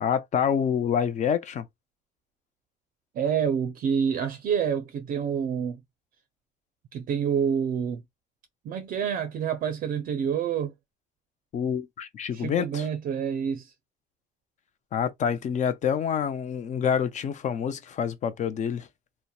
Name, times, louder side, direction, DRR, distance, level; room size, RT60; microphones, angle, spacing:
voice 1, 0.0-1.7 11.5-12.9 14.9-18.9, left 8 dB, 45° left, 0.5 m, -27 dB
voice 2, 3.2-5.8 6.9-8.0 8.7-10.7 12.3-13.7, right 7 dB, 55° right, 0.4 m, -27 dB
2.8 x 2.0 x 2.2 m
cardioid pair, 110°, 17 cm